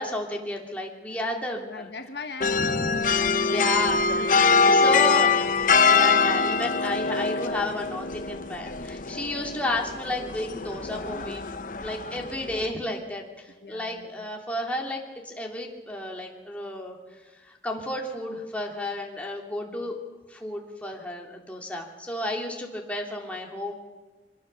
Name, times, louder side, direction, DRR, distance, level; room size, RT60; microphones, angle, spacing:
voice 1, 0.0-1.9 2.6-3.0 3.5-4.0 4.6-5.3 5.8-11.4 11.8-17.0 17.4-20.0 20.3-23.7, left 1 dB, 10° left, 0 dB, 2.8 m, -32 dB
voice 2, 1.5-4.3 4.6-5.4 13.6-14.3 19.7-19.9, left 3 dB, 65° left, 6 dB, 1.6 m, -41 dB
sound 1, 2.4-12.7, left 4 dB, 45° left, 0.9 m, -24 dB
24.5 x 21.0 x 6.8 m, 1.2 s
head